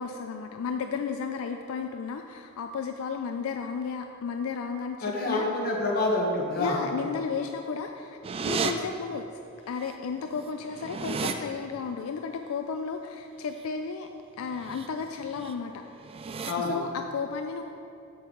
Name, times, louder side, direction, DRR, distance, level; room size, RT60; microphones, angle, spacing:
voice 1, 0.0-5.5 6.6-9.4 9.7-14.1 14.4-15.7 16.6-17.6, left 5 dB, 85° left, 5 dB, 0.4 m, -33 dB
voice 2, 5.0-6.8 16.4-16.8, left 2 dB, 50° left, -2 dB, 1.3 m, -27 dB
sound 1, 8.2-8.7 9.9-10.0 10.3-11.3 14.5-14.9 15.2-15.5 16.0-16.5, right 5 dB, 25° right, 0.3 m, -32 dB
6.9 x 6.6 x 3.9 m, 2.6 s
head